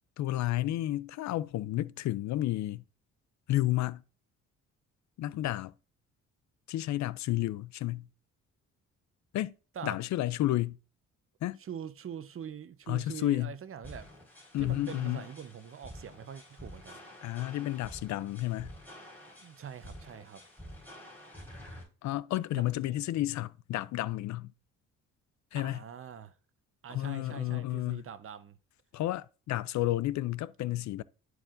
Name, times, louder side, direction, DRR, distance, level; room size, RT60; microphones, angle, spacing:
voice 1, 0.2-2.8 3.5-4.0 5.2-5.7 6.7-8.1 9.3-9.5 9.8-10.8 11.4-11.6 12.9-13.5 14.5-15.2 17.2-18.7 22.0-24.5 25.5-25.8 26.9-28.0 28.9-31.0, left 15 dB, 65° left, 0.4 m, -31 dB
voice 2, 11.6-14.1 14.6-17.0 19.4-20.4 22.5-23.0 25.5-26.3 26.8-28.6, right 8 dB, 45° right, 0.8 m, -44 dB
sound 1, 13.8-21.8, equal, 5° left, 4.2 m, -49 dB
12.0 x 4.7 x 2.5 m
cardioid pair, 90°, 30 cm